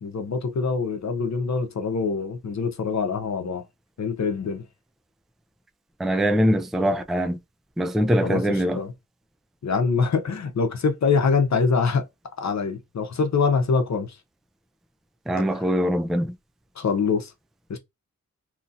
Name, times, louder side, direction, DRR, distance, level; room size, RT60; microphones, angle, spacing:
voice 1, 0.0-3.6 4.0-4.6 8.2-8.4 8.8-8.9 9.6-12.0 12.4-14.1 16.8-17.3 17.7-17.8, left 5 dB, 60° left, 0.8 m, -24 dB
voice 2, 6.0-7.4 7.8-8.8 15.3-16.3, equal, ahead, 0.4 m, -22 dB
2.9 x 2.7 x 2.5 m
wide cardioid pair, 75°, 31 cm